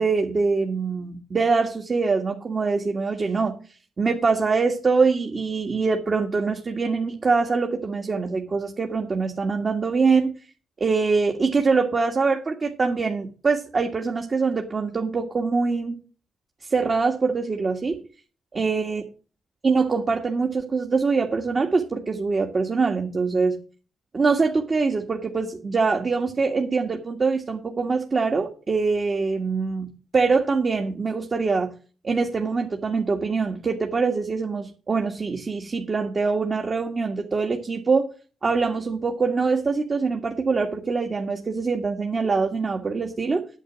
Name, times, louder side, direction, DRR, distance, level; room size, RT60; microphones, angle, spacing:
voice 1, 0.0-3.5 4.0-10.3 10.8-16.0 16.6-17.9 18.6-19.0 19.6-23.5 24.1-29.9 30.1-31.7 32.0-38.1 38.4-43.5, right 4 dB, 45° right, 2 dB, 1.8 m, -23 dB
9.1 x 7.7 x 6.2 m, 0.38 s
supercardioid pair, 50°, 0 cm